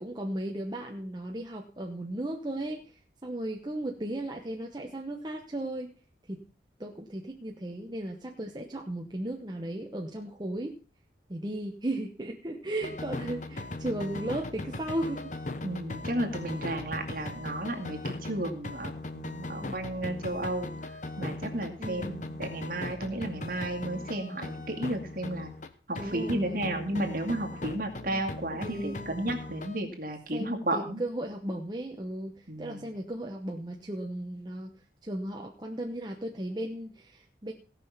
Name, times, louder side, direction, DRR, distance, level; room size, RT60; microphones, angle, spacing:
voice 1, 0.0-5.9 6.3-6.4 6.8-10.8 11.3-15.4 19.6-19.9 21.8-22.2 25.9-26.7 27.5-27.6 27.9-28.3 28.6-29.1 30.3-34.7 35.0-37.5, right 1 dB, 25° right, 1 dB, 1.0 m, -36 dB
sound 1, 12.8-25.7 26.0-29.8, left 2 dB, 40° left, 1.0 m, -39 dB
voice 2, 15.6-20.7 21.2-25.5 25.9-31.0 32.5-32.9, right 1 dB, 50° right, 2 dB, 2.2 m, -33 dB
17.0 x 5.9 x 5.7 m, 0.40 s
head